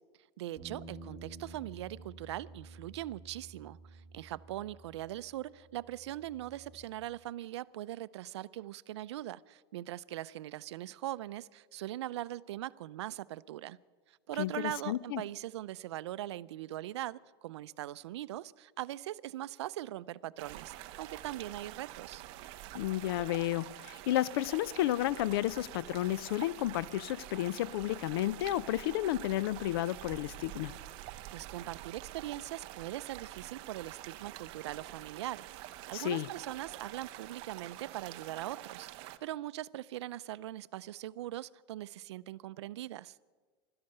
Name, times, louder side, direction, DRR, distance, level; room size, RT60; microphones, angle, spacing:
voice 1, 0.4-13.8 14.1-22.2 31.3-43.2, right 14 dB, 85° right, 0.5 m, -41 dB
sound 1, 0.6-6.8, right 3 dB, 5° right, 3.8 m, -51 dB
voice 2, 14.4-15.2 22.7-30.7 35.9-36.3, left 14 dB, 60° left, 0.4 m, -32 dB
sound 2, 20.4-39.2, right 14 dB, 40° right, 0.6 m, -47 dB
16.0 x 12.5 x 6.6 m
supercardioid pair, 165°, 14 cm